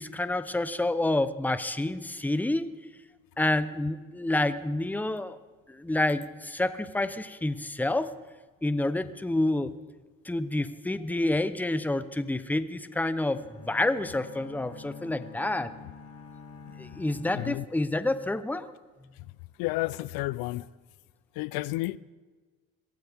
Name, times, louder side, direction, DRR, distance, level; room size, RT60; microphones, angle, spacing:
voice 1, 0.0-2.7 3.4-5.4 5.7-8.1 8.6-9.7 10.2-15.7 16.8-18.7, left 2 dB, 5° left, 0.7 m, -28 dB
sound 1, 13.3-18.3, left 4 dB, 40° left, 2.5 m, -48 dB
voice 2, 17.3-17.7 19.6-20.7 21.4-22.0, left 19 dB, 85° left, 0.6 m, -31 dB
23.0 x 17.0 x 3.5 m
cardioid pair, 105°, 35 cm